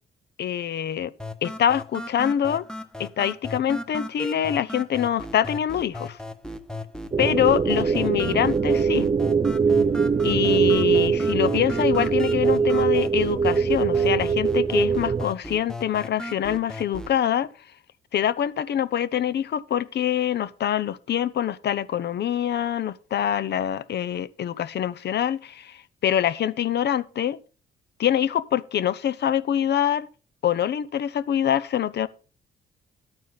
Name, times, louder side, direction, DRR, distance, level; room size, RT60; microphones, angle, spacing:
voice 1, 0.4-1.1 1.4-2.6 3.0-6.2 7.2-9.1 10.2-17.5 18.1-27.4 28.0-30.1 30.4-32.1, left 10 dB, 60° left, 0.7 m, -25 dB
sound 1, 1.2-17.2, left 1 dB, 5° left, 1.1 m, -37 dB
sound 2, 7.1-15.3, right 6 dB, 25° right, 0.4 m, -22 dB
11.5 x 9.2 x 4.0 m
cardioid pair, 90°, 20 cm